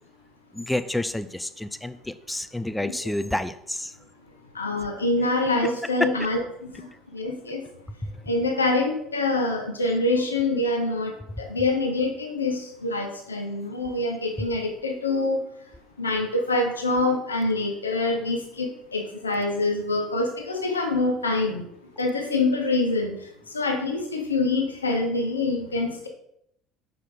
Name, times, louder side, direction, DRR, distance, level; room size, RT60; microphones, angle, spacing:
voice 1, 0.5-3.9 8.0-8.1, left 1 dB, 5° left, 12 dB, 0.3 m, -29 dB
voice 2, 4.5-6.9 7.1-7.6 8.3-15.4 16.0-21.6 22.0-23.2 23.5-26.1, left 2 dB, 80° left, 3 dB, 0.8 m, -25 dB
5.9 x 4.4 x 3.9 m, 0.73 s
figure-of-eight pair, 65°, 0 cm